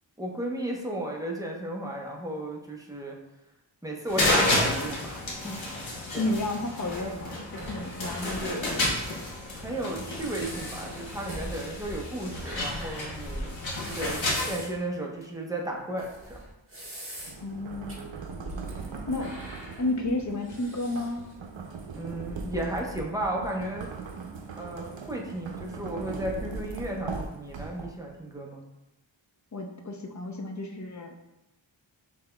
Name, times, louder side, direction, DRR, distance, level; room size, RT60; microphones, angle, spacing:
voice 1, 0.2-3.2 3.8-5.6 5.9-6.3 8.2-8.6 9.5-13.5 13.9-16.4 21.9-23.9 24.6-28.6, right 1 dB, 10° right, -1 dB, 0.8 m, -34 dB
sound 1, 4.1-14.6, left 1 dB, 80° left, 1.0 m, -31 dB
voice 2, 6.1-9.2 17.4-18.0 19.1-19.3 19.8-21.3 29.5-31.2, left 2 dB, 40° left, 4 dB, 0.6 m, -32 dB
sound 2, 7.6-8.7 9.0-9.1 9.8-9.9 10.1-14.8 15.2-15.3 16.0-17.5 17.9-18.0 18.5-18.9 19.2-21.3, right 1 dB, 30° right, 1.2 m, -42 dB
sound 3, 17.2-28.2, right 4 dB, 75° right, 0.6 m, -39 dB
5.7 x 3.4 x 2.2 m, 0.93 s
wide cardioid pair, 60°, 46 cm